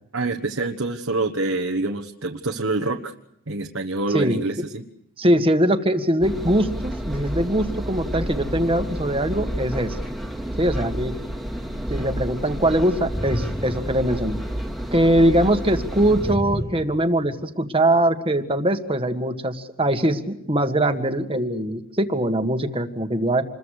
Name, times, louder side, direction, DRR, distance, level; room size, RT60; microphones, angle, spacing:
voice 1, 0.1-3.1 3.5-4.8, right 2 dB, 65° right, 3 dB, 1.4 m, -26 dB
voice 2, 5.2-10.0 10.6-11.1 11.9-14.4 14.9-23.4, right 1 dB, 25° right, 7 dB, 1.7 m, -22 dB
Engine, 6.2-16.4, equal, ahead, 2.2 m, -30 dB
sound 1, 11.2-11.3 13.0-14.6 16.1-17.4, equal, 15° left, 1.8 m, -31 dB
28.0 x 22.0 x 6.6 m, 0.75 s
head